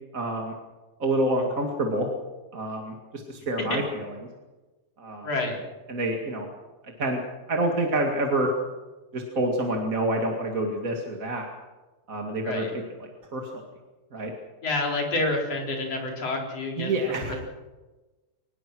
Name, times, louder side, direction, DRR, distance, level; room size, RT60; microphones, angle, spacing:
voice 1, 0.1-0.5 1.0-2.1 2.5-4.2 5.0-5.3 5.9-6.5 6.8-7.2 7.5-8.5 9.1-11.5 12.1-13.5 14.1-14.3 16.8-17.3, right 1 dB, 30° right, 1 dB, 2.1 m, -27 dB
voice 2, 5.2-5.6 12.4-12.7 14.6-16.9, left 2 dB, 50° left, 0 dB, 5.3 m, -28 dB
23.0 x 20.5 x 6.2 m, 1.2 s
omnidirectional pair, 3.6 m